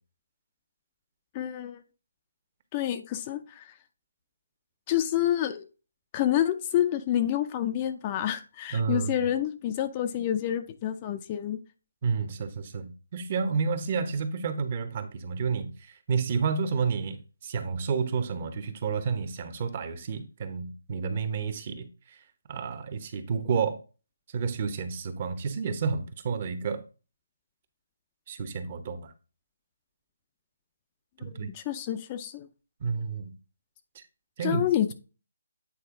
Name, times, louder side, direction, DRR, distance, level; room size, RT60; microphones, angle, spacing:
voice 1, 1.3-1.8 2.7-3.7 4.9-5.7 6.1-11.6 31.2-32.5 34.4-34.9, left 11 dB, 20° left, 0.5 m, -28 dB
voice 2, 8.7-9.3 12.0-17.2 17.4-22.2 22.5-23.8 24.3-26.8 28.3-29.1 31.2-31.5 32.8-33.4 33.9-34.0 34.4-34.6, right 5 dB, 35° right, 0.9 m, -30 dB
8.6 x 4.2 x 3.7 m
hypercardioid pair, 170°, 0 cm